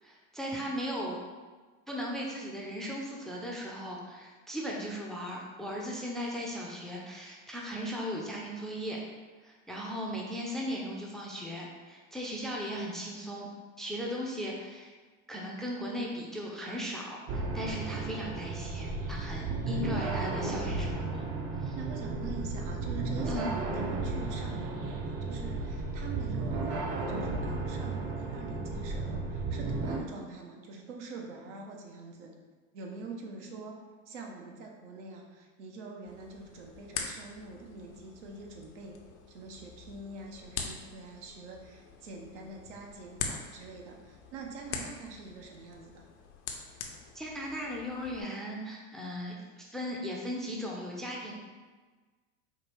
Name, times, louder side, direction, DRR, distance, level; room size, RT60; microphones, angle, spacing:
voice 1, 0.0-1.2 1.9-9.0 9.4-13.5 13.8-14.9 15.3-21.3 21.6-21.8 23.3-23.5 47.1-51.3, equal, ahead, -2 dB, 0.5 m, -37 dB
sound 1, 17.3-30.0, right 3 dB, 40° right, 0.6 m, -34 dB
voice 2, 21.7-32.3 32.7-33.8 34.1-39.0 39.3-46.1, right 3 dB, 75° right, 1 dB, 0.9 m, -44 dB
sound 2, 36.1-48.2, left 6 dB, 70° left, 0.7 m, -44 dB
4.6 x 2.3 x 3.3 m, 1.4 s
hypercardioid pair, 105°, 36 cm